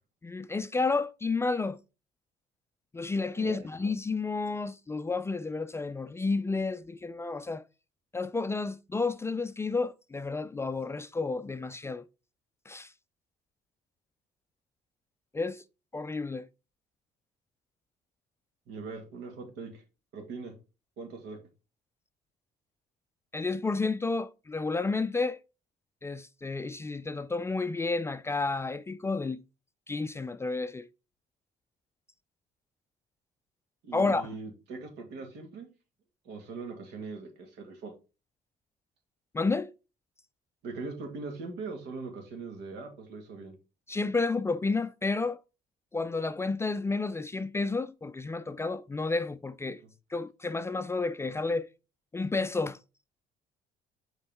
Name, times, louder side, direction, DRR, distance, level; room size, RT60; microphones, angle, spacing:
voice 1, 0.2-1.8 2.9-7.6 8.1-12.1 12.7-12.9 15.3-15.6 15.9-16.5 23.3-25.4 26.0-29.4 29.9-30.9 33.9-34.3 39.3-39.7 43.9-45.4 45.9-49.8 50.1-51.7 52.1-52.8, left 3 dB, 15° left, 0.3 m, -31 dB
voice 2, 18.7-19.8 20.1-20.5 21.0-21.4 33.8-35.7 36.3-37.9 40.6-43.5 49.8-49.9, right 4 dB, 85° right, 2.1 m, -41 dB
6.7 x 4.4 x 3.5 m
cardioid pair, 110°, 17 cm